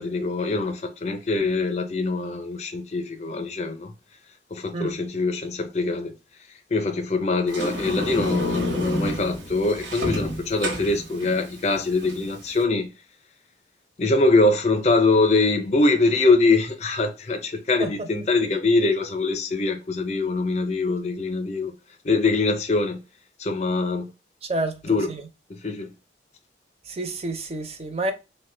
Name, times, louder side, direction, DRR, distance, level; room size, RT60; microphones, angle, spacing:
voice 1, 0.0-3.9 4.5-6.1 6.7-12.9 14.0-21.7 22.0-23.0 23.4-24.1 24.8-25.1 25.5-25.9, left 3 dB, 35° left, 0.4 m, -23 dB
Sliding door, 7.5-12.6, equal, 80° right, 0.9 m, -30 dB
voice 2, 24.5-25.2 26.9-28.1, right 2 dB, 35° right, 0.4 m, -29 dB
3.2 x 2.1 x 3.1 m
head